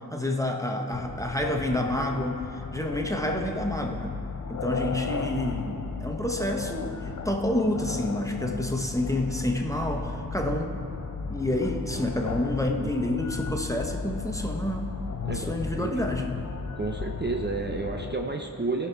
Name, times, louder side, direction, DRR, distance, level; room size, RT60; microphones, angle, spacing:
voice 1, 0.1-4.2 4.5-10.7 11.3-14.9 15.3-16.5, left 1 dB, 10° left, 2 dB, 0.9 m, -29 dB
sound 1, 0.9-18.1, left 5 dB, 50° left, 0.5 m, -35 dB
sound 2, 6.2-13.7, equal, 80° right, 2.7 m, -50 dB
voice 2, 12.6-12.9 15.2-15.9 16.8-18.9, right 3 dB, 30° right, 2 dB, 0.6 m, -31 dB
17.0 x 5.9 x 4.5 m, 2.7 s
wide cardioid pair, 45°, 36 cm